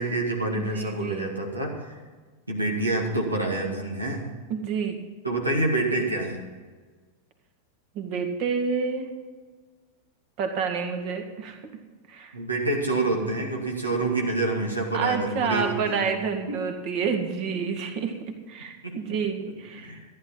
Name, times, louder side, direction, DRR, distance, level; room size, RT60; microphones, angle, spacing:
voice 1, 0.0-2.0 2.5-4.3 5.2-6.4 12.3-16.1 16.5-16.6 18.8-19.2 19.4-20.0, right 2 dB, 85° right, 0 dB, 2.3 m, -27 dB
voice 2, 0.5-1.3 4.5-5.0 8.0-9.1 10.4-11.6 12.1-12.3 14.9-20.0, right 6 dB, 45° right, 5 dB, 2.1 m, -29 dB
14.5 x 11.0 x 5.6 m, 1.4 s
figure-of-eight pair, 90°, 0 cm